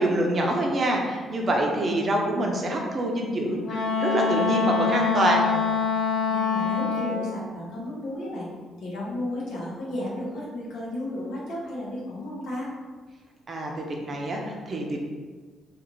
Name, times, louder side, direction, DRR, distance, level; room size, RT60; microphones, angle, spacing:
voice 1, 0.0-5.5 13.5-15.0, right 1 dB, 40° right, 0 dB, 0.5 m, -25 dB
Wind instrument woodwind instrument, 3.6-7.3, left 6 dB, 70° left, 0.5 m, -25 dB
voice 2, 6.3-8.5 8.8-12.7, left 1 dB, 90° left, -6 dB, 0.9 m, -33 dB
2.5 x 2.4 x 3.0 m, 1.4 s
cardioid pair, 90°, 0 cm